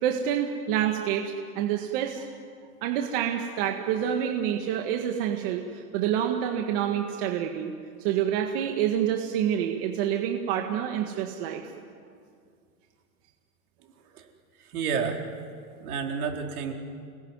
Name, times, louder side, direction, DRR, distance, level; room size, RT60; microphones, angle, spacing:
voice 1, 0.0-2.3 2.8-7.7 8.0-11.6, right 9 dB, 35° right, 3 dB, 1.8 m, -27 dB
voice 2, 14.7-15.2 15.8-16.7, right 6 dB, 65° right, 2 dB, 4.5 m, -30 dB
29.5 x 20.5 x 9.7 m, 2.2 s
supercardioid pair, 165°, 46 cm